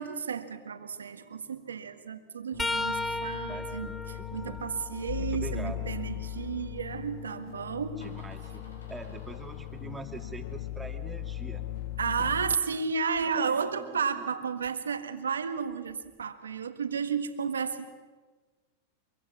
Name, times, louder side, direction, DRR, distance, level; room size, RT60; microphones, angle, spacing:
voice 1, 0.0-3.9 4.3-8.1 12.0-17.9, right 6 dB, 90° right, 8 dB, 1.6 m, -32 dB
sound 1, 2.5-12.6, left 13 dB, 60° left, 0.8 m, -39 dB
sound 2, 2.6-6.4 6.9-8.8 11.7-11.9 13.2-13.3 14.7-14.8, left 2 dB, 5° left, 1.0 m, -38 dB
voice 2, 3.5-4.0 4.4-4.6 5.2-6.0 8.0-11.6 12.2-12.3 13.3-14.3, right 3 dB, 10° right, 5 dB, 2.6 m, -44 dB
Door, 5.2-12.9, left 1 dB, 90° left, 5.0 m, -58 dB
23.5 x 23.5 x 7.4 m, 1.4 s
hypercardioid pair, 105°, 0 cm